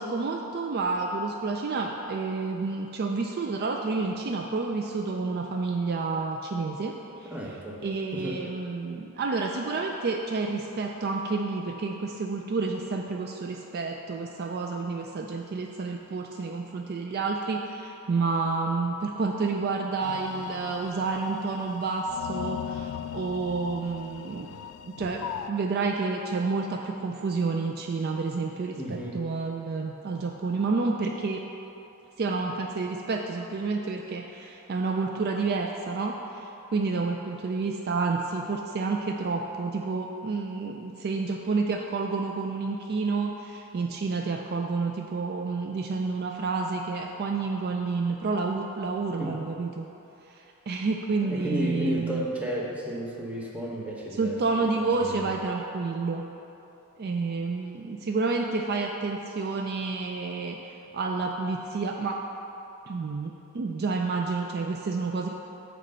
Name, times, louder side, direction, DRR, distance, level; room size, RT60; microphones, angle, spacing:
voice 1, 0.0-7.0 7.8-24.5 24.8-31.4 32.2-49.9 50.7-52.2 54.2-56.3 57.0-60.6 60.9-62.2 62.9-65.3, right 4 dB, 45° right, 2 dB, 0.4 m, -29 dB
voice 2, 7.2-7.8 8.1-8.4 28.8-29.3 49.2-49.4 51.2-55.3, equal, 5° right, -4 dB, 0.9 m, -33 dB
sound 1, 20.0-25.5, left 9 dB, 85° left, 0.3 m, -38 dB
9.0 x 3.3 x 6.6 m, 2.9 s
head